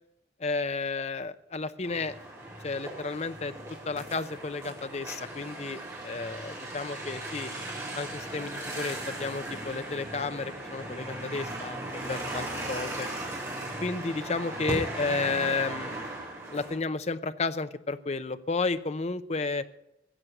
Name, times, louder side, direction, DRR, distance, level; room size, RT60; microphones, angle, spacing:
voice 1, 0.4-2.1 2.6-3.5 3.9-7.5 8.0-13.1 13.8-16.1 16.5-19.7, left 3 dB, 40° left, 12 dB, 0.6 m, -32 dB
sound 1, 1.8-16.7, right 1 dB, 15° right, 4.0 m, -37 dB
15.0 x 8.0 x 7.9 m, 0.84 s
head